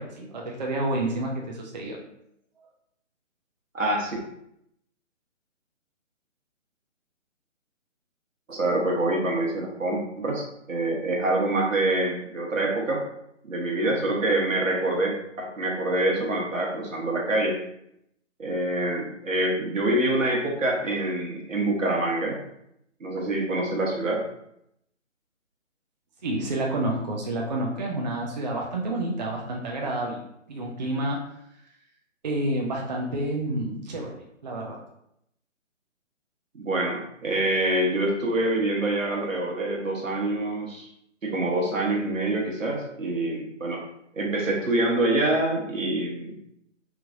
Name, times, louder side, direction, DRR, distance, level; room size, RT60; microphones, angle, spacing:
voice 1, 0.0-2.0 26.2-30.2 30.5-31.3 32.2-34.8, right 1 dB, 35° right, -1 dB, 0.5 m, -29 dB
voice 2, 3.7-4.2 8.5-13.0 13.4-17.6 18.4-22.4 23.0-24.2 36.5-40.9 41.2-43.8 44.2-46.3, right 1 dB, 80° right, -1 dB, 1.2 m, -26 dB
3.1 x 3.1 x 2.5 m, 0.76 s
figure-of-eight pair, 145°, 38 cm